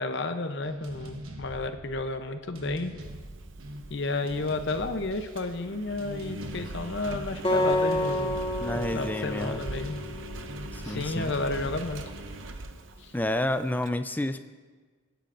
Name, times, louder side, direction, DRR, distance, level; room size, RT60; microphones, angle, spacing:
voice 1, 0.0-2.9 3.9-8.4 8.9-10.0 10.8-12.0 13.0-13.1, left 2 dB, 55° left, 8 dB, 0.7 m, -32 dB
sound 1, 0.6-13.4, right 1 dB, 80° right, 1.2 m, -43 dB
Engine, 3.0-13.9, right 1 dB, 60° right, 0.7 m, -42 dB
Acoustic guitar, 7.4-10.7, left 1 dB, 25° left, 1.4 m, -29 dB
voice 2, 8.6-9.6 10.7-11.3 13.1-14.5, left 1 dB, 10° left, 10 dB, 0.3 m, -30 dB
22.5 x 10.0 x 2.6 m, 1.4 s
head